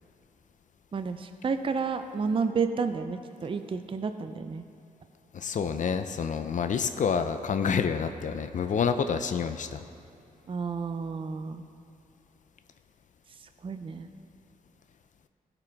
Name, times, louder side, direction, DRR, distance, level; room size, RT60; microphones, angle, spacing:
voice 1, 0.9-4.6 10.5-11.6 13.4-14.1, right 5 dB, 40° right, 8 dB, 0.5 m, -31 dB
voice 2, 5.3-9.8, left 6 dB, 60° left, 9 dB, 0.5 m, -28 dB
16.0 x 5.9 x 3.4 m, 2.6 s
cardioid pair, 75°, 14 cm